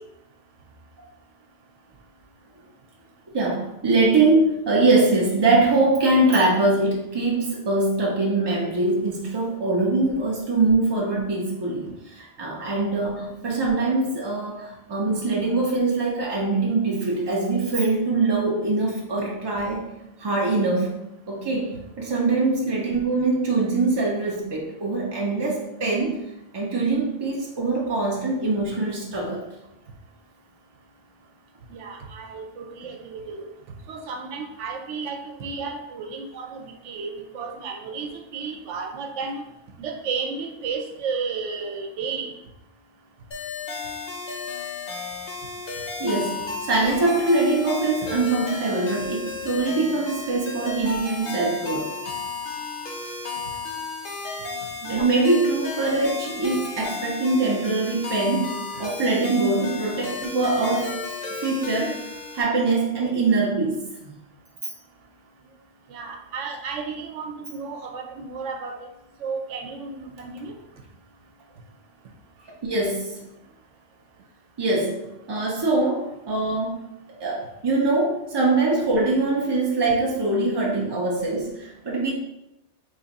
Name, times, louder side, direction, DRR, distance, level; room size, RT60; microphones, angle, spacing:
voice 1, 3.3-19.9 20.2-21.0 21.3-21.7 22.0-26.2 26.5-29.5 46.0-51.9 54.9-61.0 61.4-62.1 62.3-64.1 72.6-73.2 74.6-76.8 77.2-82.1, right 2 dB, 45° right, -3 dB, 0.3 m, -23 dB
voice 2, 31.7-33.5 33.9-39.4 39.8-42.3 54.8-55.1 65.9-68.9 69.2-70.5, right 5 dB, 85° right, 3 dB, 0.9 m, -33 dB
sound 1, 43.3-62.4, left 3 dB, 55° left, 0.7 m, -33 dB
3.2 x 2.5 x 4.0 m, 0.88 s
omnidirectional pair, 1.2 m